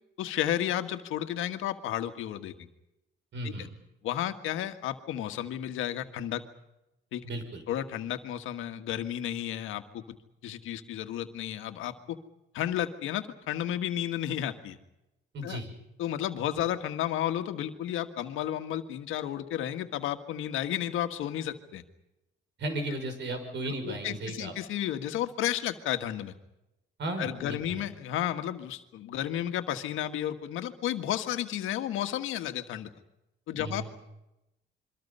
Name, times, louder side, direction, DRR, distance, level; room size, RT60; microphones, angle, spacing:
voice 1, 0.2-2.5 3.4-3.7 4.0-6.4 7.1-7.2 7.7-10.0 10.4-12.2 12.5-14.8 15.4-15.6 16.0-21.8 23.8-26.3 27.2-32.9 33.5-34.0, left 11 dB, 90° left, 8 dB, 1.6 m, -32 dB
voice 2, 3.3-3.7 7.2-7.6 15.3-15.7 22.6-24.5 27.0-27.8 33.6-33.9, right 1 dB, 65° right, 7 dB, 6.1 m, -35 dB
27.0 x 24.0 x 5.6 m, 0.89 s
cardioid pair, 90°, 20 cm